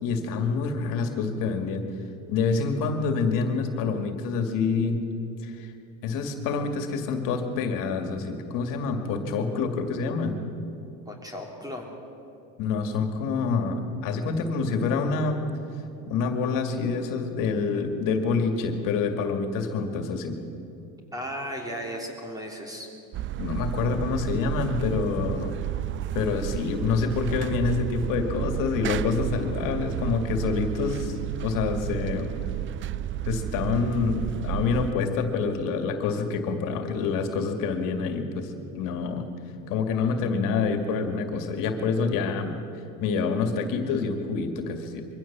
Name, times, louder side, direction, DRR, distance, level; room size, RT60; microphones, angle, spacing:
voice 1, 0.0-1.8 2.3-5.0 5.4-5.7 6.0-10.4 12.6-15.4 16.1-20.4 23.4-25.6 26.1-32.3 33.3-39.3 39.7-42.6 43.0-45.1, left 4 dB, 75° left, 6 dB, 2.3 m, -27 dB
voice 2, 11.1-11.9 21.1-22.9, equal, 10° right, 1 dB, 3.4 m, -35 dB
sound 1, 23.1-34.9, right 12 dB, 40° right, 0.4 m, -32 dB
23.0 x 15.5 x 7.4 m, 2.8 s
cardioid pair, 135°, 33 cm